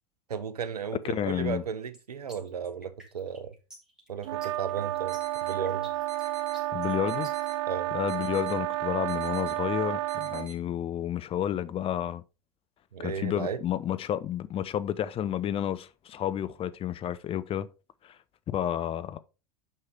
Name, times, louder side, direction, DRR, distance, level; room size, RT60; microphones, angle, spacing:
voice 1, 0.3-3.5 4.1-5.9 7.7-7.9 12.9-13.6, right 7 dB, 80° right, 0.9 m, -35 dB
voice 2, 1.0-1.6 6.7-7.3 7.9-12.2 13.0-17.7 18.0-18.2 18.5-19.2, left 10 dB, 30° left, 0.6 m, -31 dB
sound 1, 1.9-7.5, right 1 dB, 5° right, 3.3 m, -51 dB
sound 2, 4.2-10.5, right 15 dB, 55° right, 0.4 m, -31 dB
sound 3, 5.1-5.6 6.1-6.6 7.1-7.6 8.1-8.6 9.1-9.6 10.1-10.6, right 6 dB, 40° right, 2.3 m, -48 dB
9.1 x 5.6 x 3.4 m
figure-of-eight pair, 85°, 20 cm